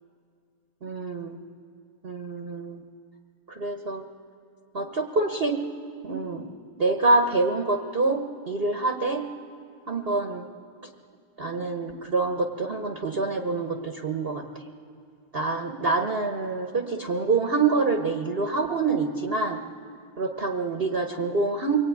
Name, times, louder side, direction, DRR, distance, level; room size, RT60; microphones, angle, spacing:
voice 1, 0.8-1.4 2.0-2.8 3.5-4.0 4.7-5.6 6.0-6.5 6.8-9.2 9.9-10.5 11.4-14.4 15.3-19.6 20.2-21.8, right 3 dB, 35° right, 4 dB, 1.0 m, -26 dB
23.5 x 20.5 x 9.4 m, 2.3 s
omnidirectional pair, 2.3 m